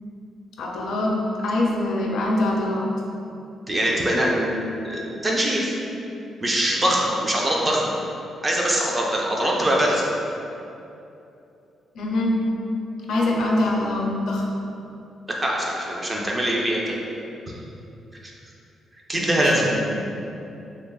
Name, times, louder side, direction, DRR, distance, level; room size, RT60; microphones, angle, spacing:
voice 1, 0.6-1.2 1.4-2.9 11.9-12.4 13.1-14.4 19.4-19.8, left 1 dB, 70° left, -1 dB, 0.5 m, -23 dB
voice 2, 3.7-5.7 6.4-7.9 8.4-10.1 15.4-17.0 17.5-17.6 19.1-19.7, right 1 dB, 20° right, -2 dB, 0.4 m, -23 dB
2.9 x 2.3 x 3.9 m, 2.7 s
cardioid pair, 150°, 0 cm